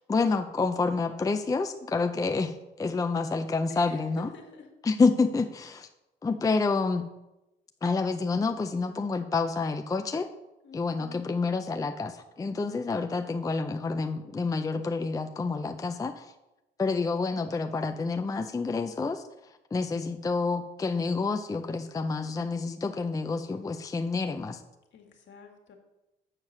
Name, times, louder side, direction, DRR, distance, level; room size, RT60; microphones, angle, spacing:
voice 1, 0.1-4.3 4.8-5.9 6.2-7.1 7.8-10.3 10.7-16.3 16.8-19.2 19.7-24.6, left 4 dB, 15° left, 7 dB, 0.4 m, -28 dB
voice 2, 3.7-4.7 10.6-11.3 24.9-25.8, left 4 dB, 65° left, 3 dB, 1.6 m, -48 dB
7.4 x 4.6 x 6.4 m, 0.97 s
cardioid pair, 90°, 20 cm